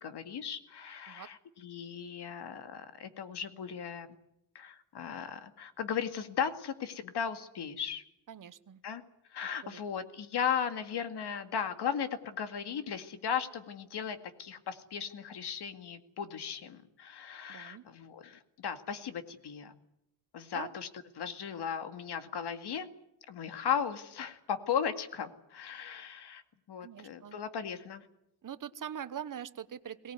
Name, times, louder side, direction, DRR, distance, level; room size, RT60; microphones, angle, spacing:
voice 1, 0.0-4.1 4.5-8.0 8.8-9.0 9.3-19.7 20.3-20.9 21.2-22.9 23.3-26.4 26.7-28.1, left 7 dB, 75° left, 9 dB, 2.2 m, -36 dB
voice 2, 8.3-8.8 9.6-9.8 17.5-17.8 20.5-20.8 26.8-27.4 28.4-30.1, right 9 dB, 50° right, 13 dB, 1.1 m, -43 dB
23.0 x 19.0 x 9.6 m, 0.82 s
wide cardioid pair, 145°, 40 cm